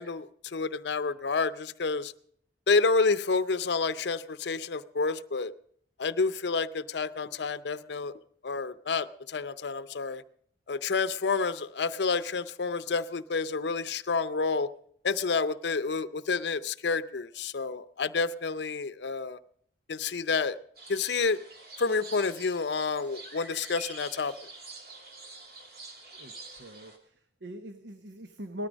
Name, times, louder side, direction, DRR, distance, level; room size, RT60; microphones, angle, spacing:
voice 1, 0.0-2.1 2.7-5.5 6.0-8.1 8.4-10.2 10.7-14.7 15.0-19.4 19.9-20.6 20.9-21.4 21.8-24.3, left 4 dB, 75° left, 14 dB, 0.6 m, -29 dB
sound 1, 20.7-27.0, right 3 dB, 55° right, 2.9 m, -47 dB
voice 2, 26.1-28.7, equal, 80° right, 8 dB, 1.1 m, -42 dB
19.0 x 13.5 x 5.2 m, 0.64 s
head